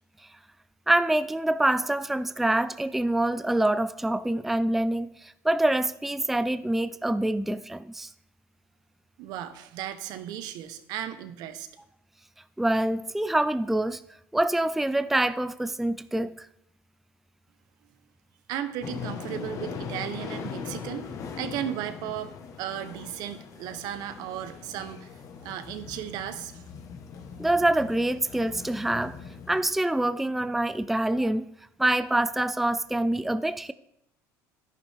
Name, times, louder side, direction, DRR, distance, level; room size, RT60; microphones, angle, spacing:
voice 1, 0.9-8.1 12.6-14.0 14.3-16.5 27.4-29.1 29.5-31.5 31.8-33.7, right 1 dB, 5° right, 0.3 m, -25 dB
voice 2, 9.2-11.7 18.5-22.3 22.6-26.6, right 10 dB, 70° right, 1.0 m, -35 dB
sound 1, 18.8-29.7, left 6 dB, 50° left, 1.4 m, -40 dB
10.5 x 10.0 x 3.6 m
supercardioid pair, 105°, 7 cm